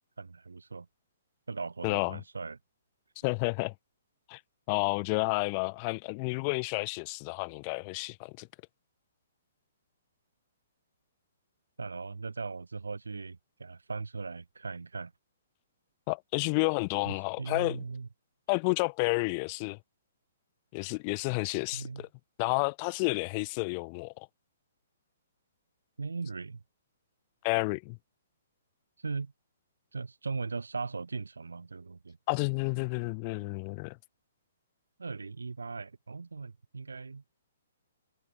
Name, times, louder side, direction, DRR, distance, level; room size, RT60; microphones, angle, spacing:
voice 1, 0.2-0.9 1.5-2.6 11.8-15.1 17.0-18.1 21.7-22.1 26.0-26.6 29.0-29.3 29.9-32.2 35.0-37.2, right 4 dB, 80° right, 5.2 m, -39 dB
voice 2, 1.8-2.2 3.2-3.7 4.3-4.4 4.7-8.5 16.1-17.8 18.5-19.8 20.7-22.1 22.4-24.3 27.4-28.0 32.3-34.0, left 33 dB, 35° left, 0.8 m, -30 dB
figure-of-eight pair, 125°, 0 cm